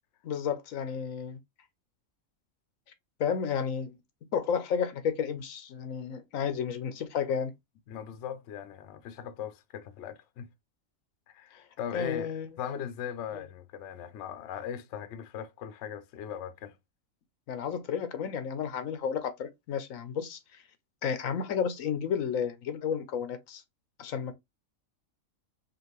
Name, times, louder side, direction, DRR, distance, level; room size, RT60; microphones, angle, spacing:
voice 1, 0.2-1.4 3.2-4.0 4.3-7.5 11.9-12.6 13.3-13.4 17.5-20.6 21.0-23.6 24.0-24.3, left 7 dB, 90° left, 1.2 m, -32 dB
voice 2, 7.9-10.5 11.3-12.3 12.6-16.7, left 9 dB, 65° left, 0.9 m, -39 dB
5.1 x 2.5 x 3.0 m
omnidirectional pair, 1.4 m